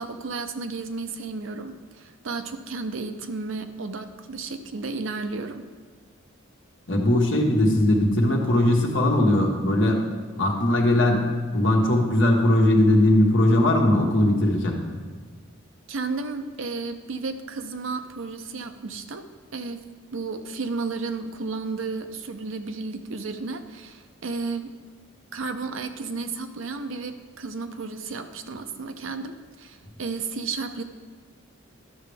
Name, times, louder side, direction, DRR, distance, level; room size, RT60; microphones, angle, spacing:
voice 1, 0.0-5.7 15.9-19.2 19.5-19.8 20.1-24.7 25.3-30.8, right 4 dB, 70° right, 8 dB, 0.6 m, -33 dB
voice 2, 6.9-10.0 10.4-11.3 11.5-14.8, left 1 dB, 60° left, 0 dB, 1.4 m, -19 dB
12.0 x 6.7 x 3.4 m, 1.5 s
head